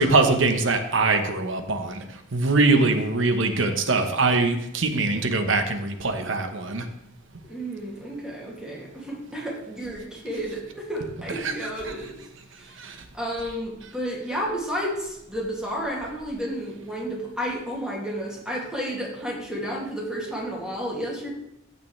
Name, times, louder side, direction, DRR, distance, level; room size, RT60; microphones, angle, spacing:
voice 1, 0.0-2.0 2.3-6.8 11.4-11.5 12.8-13.0, right 3 dB, 75° right, 7 dB, 1.0 m, -22 dB
voice 2, 7.4-12.2 12.6-12.8 13.1-21.3, equal, 5° right, -3 dB, 2.4 m, -32 dB
14.5 x 6.8 x 3.3 m, 0.82 s
head